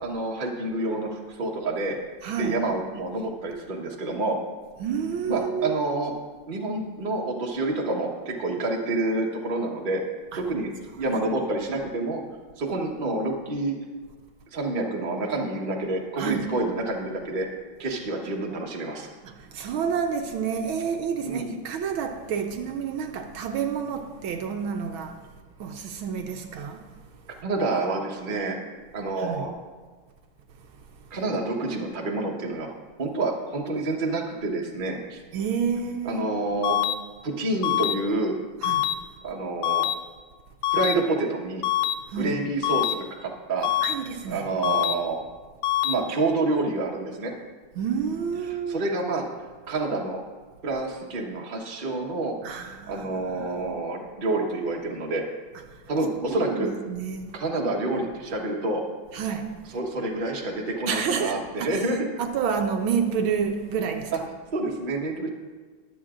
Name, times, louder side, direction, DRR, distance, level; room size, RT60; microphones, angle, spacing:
voice 1, 0.0-2.0 2.4-4.4 5.3-6.1 6.5-10.0 10.4-12.2 12.6-13.7 14.5-17.5 17.8-19.1 21.2-21.6 27.4-28.6 28.9-29.5 31.1-35.2 36.0-36.8 37.2-38.3 39.2-39.8 40.7-41.6 42.1-43.7 44.2-45.2 45.8-47.3 48.4-49.2 49.7-50.2 50.6-52.3 52.9-55.2 55.9-56.7 57.3-58.8 59.7-62.0 64.1-64.2 64.5-65.3, right 2 dB, 30° right, 1.0 m, -28 dB
voice 2, 2.2-2.6 4.8-5.8 10.3-10.4 10.9-11.2 16.2-16.5 19.2-25.2 25.6-26.9 29.2-29.5 35.3-36.2 38.6-38.8 42.1-42.4 43.8-44.7 47.8-48.8 52.4-53.7 56.2-57.4 59.1-59.5 60.9-61.8 62.2-64.1, right 6 dB, 75° right, 1.5 m, -29 dB
sound 1, 36.6-36.9 37.6-37.9 38.6-38.9 39.6-39.9 40.6-40.9 41.6-41.9 42.6-42.9 43.6-43.9 44.6-44.9 45.6-45.9, left 13 dB, 75° left, 1.1 m, -24 dB
22.0 x 8.0 x 2.5 m
omnidirectional pair, 2.4 m